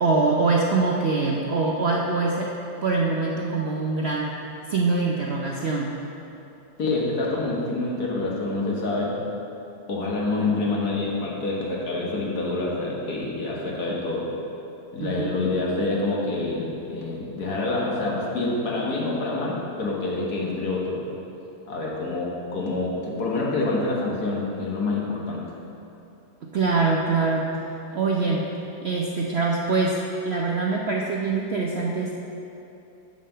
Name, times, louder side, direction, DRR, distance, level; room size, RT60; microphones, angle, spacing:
voice 1, 0.0-2.5 2.8-4.4 4.7-5.9 15.0-15.3 26.5-27.5 27.9-28.5 28.8-32.1, right 3 dB, 60° right, -1 dB, 0.7 m, -24 dB
voice 2, 6.8-9.1 9.9-14.3 14.9-21.0 21.7-25.4, left 2 dB, 65° left, -3 dB, 1.9 m, -27 dB
9.4 x 5.1 x 6.6 m, 2.9 s
omnidirectional pair, 1.8 m